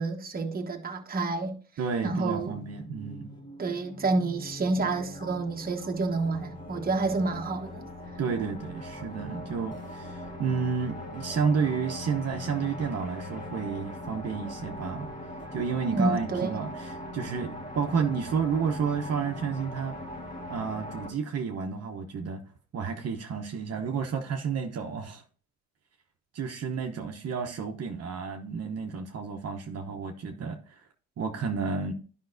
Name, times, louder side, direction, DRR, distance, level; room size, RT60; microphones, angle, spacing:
voice 1, 0.0-1.6 2.0-2.6 3.6-7.8 15.9-16.5, right 3 dB, 30° right, 1.1 m, -29 dB
voice 2, 1.8-3.4 8.2-15.1 15.5-19.9 20.5-22.4 22.7-25.2 26.3-30.7 31.2-31.9, right 5 dB, 55° right, 0.9 m, -31 dB
sound 1, 2.1-21.1, left 1 dB, 25° left, 1.6 m, -41 dB
10.5 x 5.3 x 2.6 m
cardioid pair, 90°, 30 cm